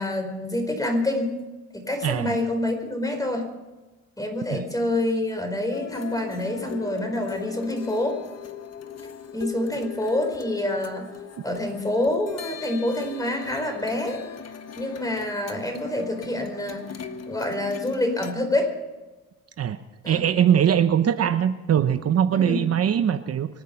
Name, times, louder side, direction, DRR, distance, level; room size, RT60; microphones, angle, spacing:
voice 1, 0.0-1.3 1.7-3.5 4.2-8.2 9.3-11.1 11.4-14.2 14.8-18.7 20.0-20.2 22.3-22.7, left 1 dB, 10° left, 4 dB, 4.6 m, -27 dB
voice 2, 2.0-2.4 4.5-4.6 19.6-19.8 20.1-23.5, right 9 dB, 55° right, 10 dB, 0.9 m, -21 dB
sound 1, 5.7-18.3, left 7 dB, 55° left, 1.4 m, -39 dB
25.0 x 9.3 x 5.8 m, 1.2 s
cardioid pair, 90°, 30 cm